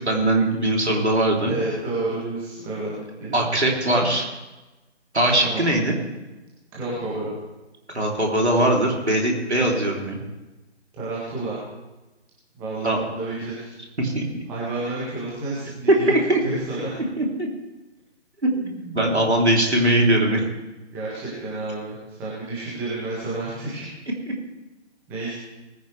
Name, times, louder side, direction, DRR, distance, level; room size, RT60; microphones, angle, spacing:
voice 1, 0.0-1.5 3.3-4.3 5.1-6.0 7.9-10.2 12.8-13.0 14.0-14.2 15.9-16.4 17.2-17.5 18.4-18.5 18.9-20.4, right 1 dB, 70° right, -1 dB, 3.5 m, -20 dB
voice 2, 1.5-3.4 5.3-5.7 6.7-7.3 10.9-11.6 12.5-13.7 14.5-16.1 16.4-17.0 18.5-19.4 20.9-23.9 25.1-25.3, right 2 dB, 5° right, -8 dB, 1.8 m, -30 dB
20.0 x 10.5 x 3.4 m, 1.1 s
figure-of-eight pair, 155°, 35 cm